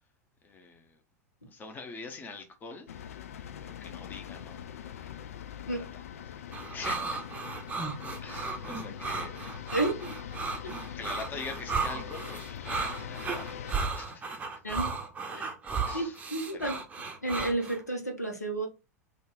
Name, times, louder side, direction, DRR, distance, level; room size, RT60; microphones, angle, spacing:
voice 1, 0.4-1.0 1.5-2.9 3.6-4.6 4.9-6.4 6.7-7.8 8.2-9.8 10.9-14.6 15.8-16.2 16.5-16.7, left 4 dB, 20° left, 0.9 m, -45 dB
sound 1, 2.9-13.7, left 9 dB, 65° left, 0.3 m, -42 dB
sound 2, 6.5-17.8, right 4 dB, 15° right, 0.7 m, -35 dB
voice 2, 9.7-10.2 10.6-10.7 14.6-14.9 15.3-15.5 15.9-16.8 17.2-18.7, right 2 dB, 80° left, 0.9 m, -31 dB
3.9 x 2.4 x 3.7 m
figure-of-eight pair, 85°, 9 cm